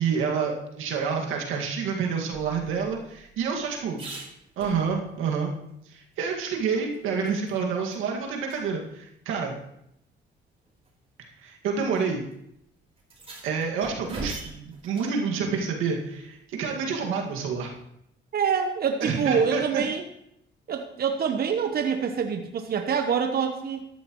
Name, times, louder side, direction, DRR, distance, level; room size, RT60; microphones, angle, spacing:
voice 1, 0.0-4.0 4.6-5.5 5.9-9.6 11.4-12.3 13.4-17.7 19.0-19.8, right 5 dB, 90° right, 0 dB, 2.0 m, -28 dB
sound 1, 2.3-5.3 5.7-5.8 6.1-7.6 7.9-8.0 8.4-8.6 9.6-9.7 10.6-10.9 11.9-12.0 12.3-12.4 13.0-15.2 17.4-17.9, right 3 dB, 30° right, 4.1 m, -43 dB
voice 2, 18.3-20.0 20.7-23.9, right 6 dB, 50° right, 5 dB, 1.0 m, -26 dB
13.5 x 11.5 x 3.1 m, 0.78 s
cardioid pair, 90°, 20 cm